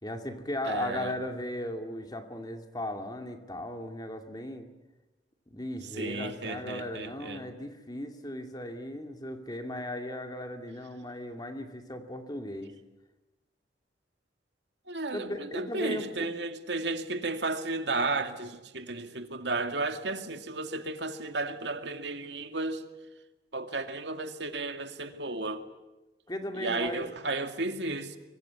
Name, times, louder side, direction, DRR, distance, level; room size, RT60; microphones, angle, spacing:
voice 1, 0.0-4.7 5.5-12.7 15.1-16.3 26.3-27.1, left 1 dB, 20° left, 2.4 m, -37 dB
voice 2, 0.7-1.2 6.0-7.4 14.9-22.8 23.5-25.6 26.6-28.2, right 3 dB, 75° right, 2.4 m, -33 dB
25.0 x 24.0 x 9.5 m
head